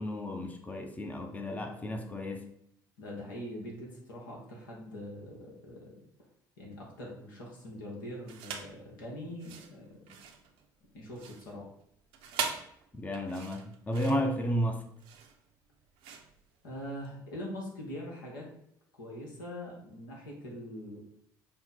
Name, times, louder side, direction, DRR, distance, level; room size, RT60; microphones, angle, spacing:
voice 1, 0.0-2.4 12.9-14.8, equal, 15° left, 4 dB, 0.6 m, -33 dB
voice 2, 3.0-6.1 6.6-10.0 10.9-11.7 16.6-18.5 18.9-21.0, equal, 75° left, -2 dB, 1.1 m, -43 dB
sound 1, 8.3-8.8 9.3-17.1, right 6 dB, 60° right, 0.6 m, -41 dB
5.5 x 2.1 x 4.2 m, 0.71 s
figure-of-eight pair, 55°, 11 cm